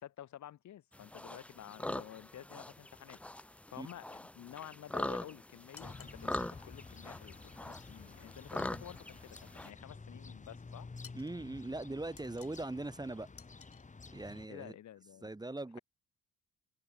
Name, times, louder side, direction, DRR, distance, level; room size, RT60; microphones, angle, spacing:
voice 1, 0.0-3.2 3.7-10.9 14.5-15.3, left 11 dB, 70° left, 3.1 m, -51 dB
sound 1, 0.9-9.7, left 1 dB, 5° left, 0.4 m, -43 dB
sound 2, 5.7-6.2 11.0-11.4 12.2-12.7 13.4-13.9, left 7 dB, 45° left, 2.4 m, -56 dB
sound 3, 5.8-14.5, left 4 dB, 25° left, 2.8 m, -51 dB
voice 2, 11.1-13.3 14.1-14.8 15.2-15.8, right 2 dB, 15° right, 2.2 m, -41 dB
cardioid pair, 90°, 30 cm